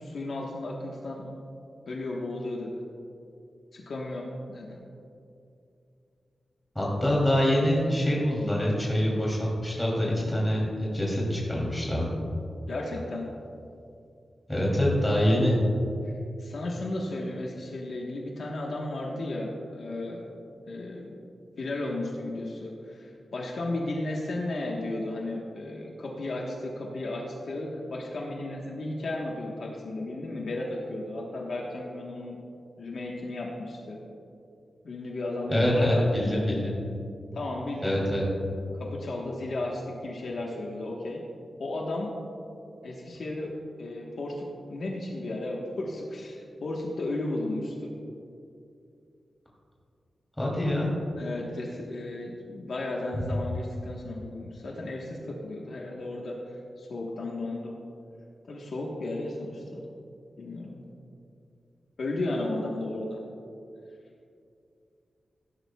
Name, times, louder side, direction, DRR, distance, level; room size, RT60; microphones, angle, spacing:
voice 1, 0.0-1.4 1.9-2.8 3.7-4.8 12.7-13.3 16.4-20.3 20.7-21.2 21.6-32.4 32.8-34.0 34.8-36.6 37.3-38.0 38.7-41.2 41.6-42.1 42.8-48.0 51.2-57.7 58.5-59.8 60.4-60.8 62.0-63.2, left 2 dB, 60° left, -2 dB, 1.3 m, -34 dB
voice 2, 6.7-12.1 14.5-15.6 35.5-36.7 37.8-38.2 50.4-50.9 53.2-53.3, left 1 dB, 5° left, -5 dB, 2.9 m, -25 dB
15.5 x 12.0 x 2.3 m, 2.5 s
wide cardioid pair, 170°, 0 cm